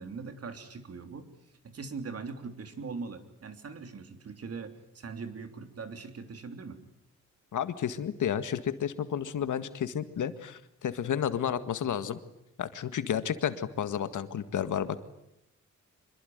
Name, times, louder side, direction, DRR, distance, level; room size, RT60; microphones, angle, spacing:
voice 1, 0.0-1.3 1.6-6.8, right 4 dB, 55° right, 8 dB, 3.2 m, -41 dB
voice 2, 7.5-12.2 12.6-15.1, left 9 dB, 85° left, 12 dB, 1.8 m, -31 dB
26.5 x 22.5 x 9.4 m, 0.81 s
wide cardioid pair, 130°, 29 cm